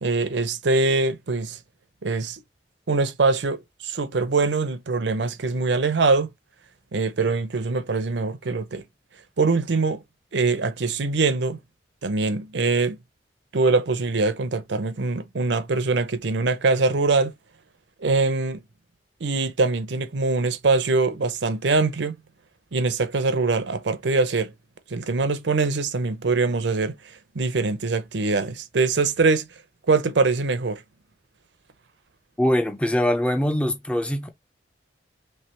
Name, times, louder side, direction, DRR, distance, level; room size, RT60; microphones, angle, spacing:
voice 1, 0.0-1.6 2.0-2.4 2.9-6.3 6.9-8.8 9.4-10.0 10.3-11.6 12.0-13.0 13.5-17.3 18.0-18.6 19.2-22.1 22.7-24.5 24.9-27.0 27.3-29.4 29.9-30.8, right 3 dB, 75° right, 0.7 m, -23 dB
voice 2, 32.4-34.3, equal, 5° left, 0.5 m, -22 dB
3.3 x 3.2 x 4.3 m
head